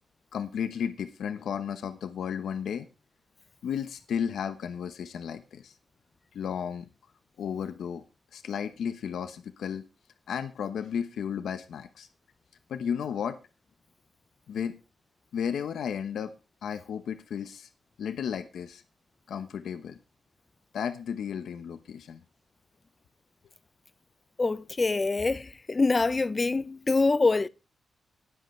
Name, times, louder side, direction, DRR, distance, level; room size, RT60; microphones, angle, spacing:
voice 1, 0.3-2.9 3.6-5.8 6.3-6.9 7.4-8.0 8.3-9.8 10.3-12.1 12.7-13.4 14.5-14.8 15.3-16.4 16.6-17.7 18.0-18.8 19.3-20.0 20.7-22.2, left 8 dB, 80° left, 0.9 m, -33 dB
voice 2, 24.4-27.5, left 3 dB, 25° left, 0.5 m, -25 dB
19.5 x 7.9 x 3.3 m
wide cardioid pair, 145°, 0 cm